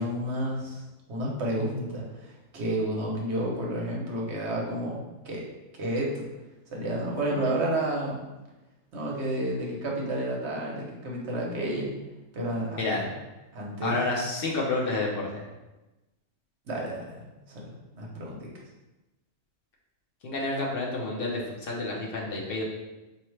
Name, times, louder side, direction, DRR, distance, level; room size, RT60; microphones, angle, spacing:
voice 1, 0.0-5.0 5.2-5.5 5.8-6.2 6.7-8.2 8.9-11.9 12.3-13.1 13.5-14.0 16.7-18.5, right 1 dB, 60° right, -2 dB, 1.1 m, -31 dB
voice 2, 13.8-15.4 20.2-22.6, left 2 dB, 50° left, -3 dB, 0.8 m, -29 dB
4.3 x 2.8 x 3.2 m, 1.1 s
omnidirectional pair, 1.4 m